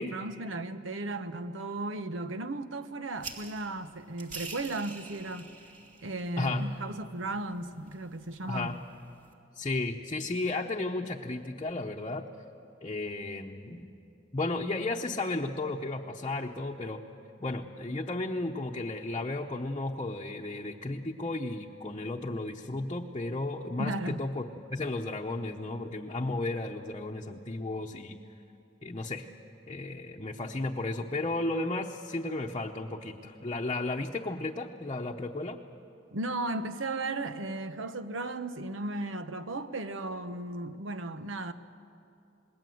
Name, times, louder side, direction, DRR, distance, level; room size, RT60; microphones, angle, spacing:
voice 1, 0.0-5.5 6.0-8.7 23.8-24.2 36.1-41.5, right 2 dB, 85° right, 1.1 m, -35 dB
sound 1, 3.2-9.3, right 4 dB, 45° right, 2.7 m, -48 dB
voice 2, 6.4-6.7 8.5-8.8 9.6-12.2 12.8-13.9 14.3-17.0 17.4-24.4 24.7-28.2 28.8-29.3 29.7-35.6, left 2 dB, 30° left, 0.9 m, -34 dB
27.5 x 20.5 x 7.9 m
head